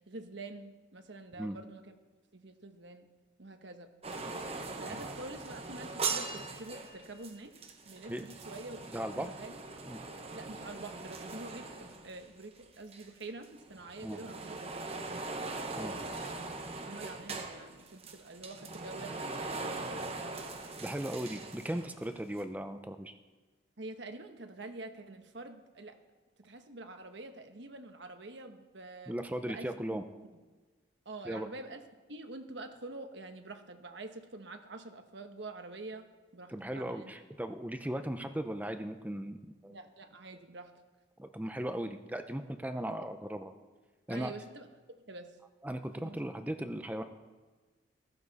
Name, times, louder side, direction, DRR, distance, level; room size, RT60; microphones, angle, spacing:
voice 1, 0.0-2.0 2.3-3.1 3.4-3.9 4.7-7.6 7.8-8.9 9.1-9.6 10.3-14.7 15.8-16.5 16.9-20.2 23.8-26.0 26.4-29.1 29.4-30.0 31.0-31.8 32.1-37.1 39.7-40.7 44.1-45.4 45.9-46.2, right 2 dB, 60° right, 6 dB, 1.1 m, -47 dB
sound 1, 4.0-12.7 12.9-22.1 22.4-22.5, right 3 dB, 30° right, 1.0 m, -41 dB
voice 2, 8.9-9.3 9.9-10.0 14.0-14.2 15.8-15.9 20.8-23.1 29.1-30.0 31.2-31.5 36.5-39.8 41.2-43.5 44.1-44.3 45.6-47.0, right 1 dB, 10° right, 7 dB, 0.5 m, -37 dB
14.5 x 13.5 x 4.1 m, 1.3 s
head